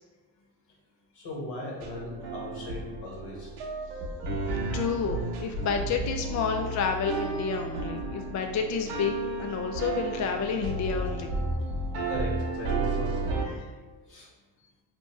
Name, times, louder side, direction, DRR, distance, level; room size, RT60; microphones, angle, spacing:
voice 1, 1.1-3.5 12.1-13.4 14.1-14.3, left 1 dB, 70° left, -3 dB, 1.5 m, -38 dB
sound 1, 1.8-13.4, right 2 dB, 85° right, 0.9 m, -32 dB
voice 2, 4.7-9.1 9.4-11.3, left 5 dB, 40° left, 4 dB, 0.4 m, -30 dB
4.4 x 2.9 x 3.1 m, 1.3 s
supercardioid pair, 55°, 44 cm